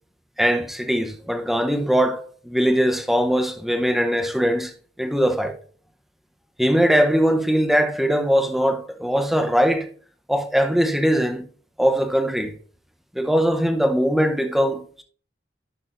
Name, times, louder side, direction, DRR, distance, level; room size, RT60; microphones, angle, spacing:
voice 1, 0.4-4.7 5.0-5.6 6.6-9.9 10.3-11.4 11.8-12.5 13.1-15.0, equal, ahead, 0.7 m, -21 dB
11.0 x 6.0 x 2.5 m
head